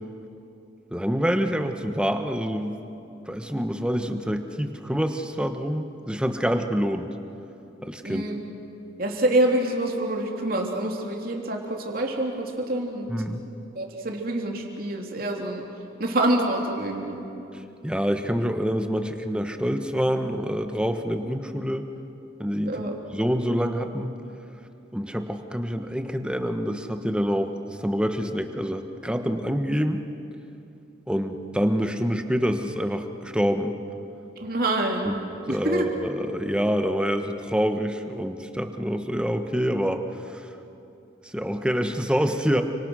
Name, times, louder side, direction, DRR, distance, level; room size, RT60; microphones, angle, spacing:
voice 1, 0.9-2.8 3.3-7.1 7.8-8.2 13.1-13.4 17.8-21.9 22.4-24.1 24.9-27.5 27.8-30.0 31.1-33.8 35.1-35.2 35.5-40.5 41.2-42.6, equal, 5° right, 6 dB, 1.2 m, -26 dB
voice 2, 8.0-8.4 9.0-13.1 13.7-15.6 16.0-17.2 22.6-23.0 34.4-35.1 35.5-35.9, right 1 dB, 50° right, 1 dB, 3.2 m, -26 dB
30.0 x 25.5 x 6.3 m, 2.8 s
head